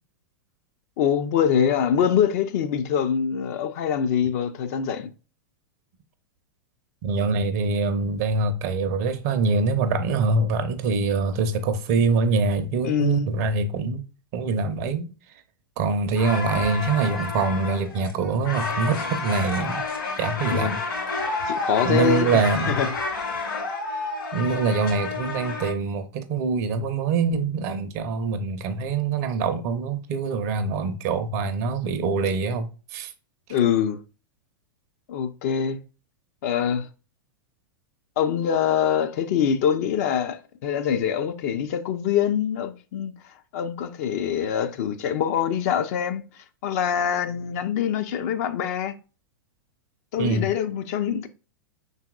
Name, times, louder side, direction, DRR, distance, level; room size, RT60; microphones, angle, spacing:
voice 1, 1.0-5.1 12.8-13.3 20.5-20.8 21.5-22.9 33.5-34.0 35.1-35.8 36.4-36.9 38.2-43.1 43.5-46.2 46.6-48.9 50.1-51.3, left 8 dB, 45° left, 0.5 m, -24 dB
voice 2, 7.0-14.0 14.3-15.1 15.8-19.9 20.2-20.8 21.8-22.8 24.3-33.1 50.2-50.5, right 4 dB, 45° right, 0.6 m, -24 dB
sound 1, 16.1-25.7, left 3 dB, 70° left, 2.5 m, -30 dB
5.7 x 4.0 x 2.3 m
figure-of-eight pair, 95°, 11 cm